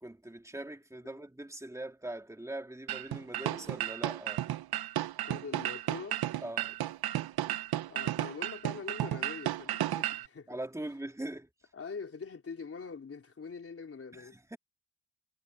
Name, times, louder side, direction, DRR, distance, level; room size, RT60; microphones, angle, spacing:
voice 1, 0.0-4.5 6.4-6.8 10.5-11.5 14.1-14.6, right 1 dB, 10° right, 2.4 m, -42 dB
sound 1, 2.9-10.3, right 13 dB, 80° right, 0.6 m, -33 dB
voice 2, 5.2-6.2 7.9-10.6 11.7-14.3, left 5 dB, 40° left, 4.3 m, -43 dB
wide cardioid pair, 180°, 37 cm